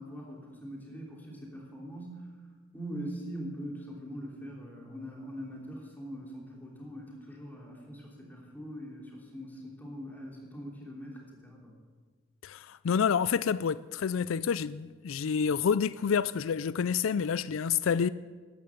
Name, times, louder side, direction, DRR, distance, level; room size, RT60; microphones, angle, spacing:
voice 1, 0.0-2.2 2.7-11.7, equal, 10° left, 3.1 m, -42 dB
voice 2, 12.4-18.1, left 7 dB, 90° left, 0.4 m, -28 dB
13.5 x 11.0 x 7.7 m
head